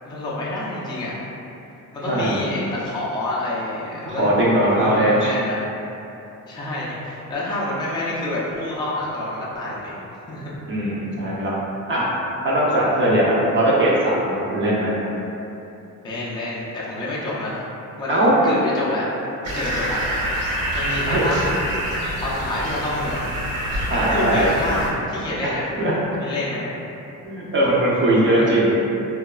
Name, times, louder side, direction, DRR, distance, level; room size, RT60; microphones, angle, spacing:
voice 1, 0.0-1.3 1.9-4.4 4.6-5.6 6.5-10.0 10.3-10.5 16.0-17.6 18.0-18.2 18.4-19.1 19.4-20.0 20.7-21.5 22.2-23.3 24.1-25.7 26.2-26.8 28.3-28.5, left 1 dB, 15° left, -7 dB, 0.4 m, -28 dB
voice 2, 2.0-2.4 4.1-5.2 10.7-11.5 11.9-12.0 12.4-14.9 18.1-18.3 21.1-21.3 23.9-24.5 25.4-25.9 27.2-28.7, right 1 dB, 35° right, -7 dB, 0.6 m, -20 dB
sound 1, 19.4-24.9, equal, 75° right, 1.1 m, -26 dB
2.8 x 2.3 x 2.3 m, 2.9 s
cardioid pair, 125°, 33 cm